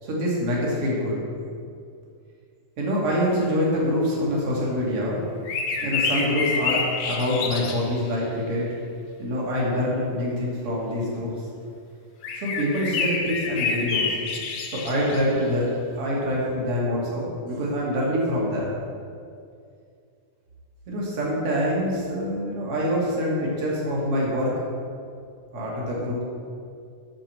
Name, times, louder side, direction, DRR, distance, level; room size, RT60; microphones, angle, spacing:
voice 1, 0.0-1.2 2.8-5.2 5.8-8.7 9.2-11.3 12.3-14.1 14.7-15.7 15.9-18.7 20.9-24.6 25.5-26.2, equal, 45° right, -4 dB, 3.0 m, -25 dB
sound 1, 5.4-8.1 12.2-15.4, left 4 dB, 70° left, 2.2 m, -28 dB
8.9 x 6.4 x 7.6 m, 2.3 s
omnidirectional pair, 4.1 m